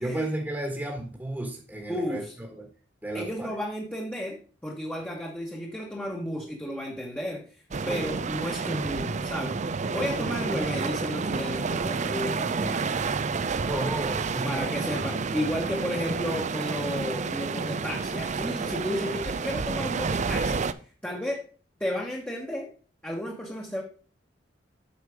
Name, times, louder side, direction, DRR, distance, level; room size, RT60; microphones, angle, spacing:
voice 1, 0.0-2.2 2.5-2.7 3.0-3.5 7.9-8.2 13.6-14.7, right 1 dB, 10° right, 0 dB, 1.5 m, -33 dB
voice 2, 1.9-2.3 3.1-9.6 9.9-12.9 14.4-20.7 21.0-21.5 21.8-22.7 23.0-23.8, equal, 10° left, -1 dB, 1.3 m, -33 dB
sound 1, 7.7-20.7, right 4 dB, 40° right, 0.5 m, -30 dB
8.2 x 6.3 x 4.9 m, 0.39 s
head